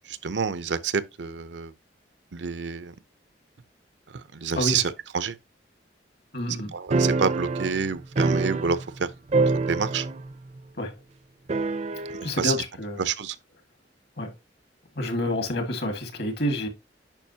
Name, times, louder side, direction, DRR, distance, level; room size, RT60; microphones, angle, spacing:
voice 1, 0.0-1.7 2.3-2.9 4.1-5.4 6.7-9.1 9.5-10.1 12.1-12.6 13.0-13.4, right 6 dB, 90° right, 0.6 m, -28 dB
voice 2, 6.3-6.7 10.8-10.9 12.2-13.0 14.2-14.3 14.9-16.7, left 1 dB, 65° left, 1.8 m, -28 dB
sound 1, 6.9-9.0 9.3-10.3 10.6-10.7 11.5-12.3, right 3 dB, 40° right, 0.4 m, -25 dB
9.0 x 5.5 x 2.8 m
head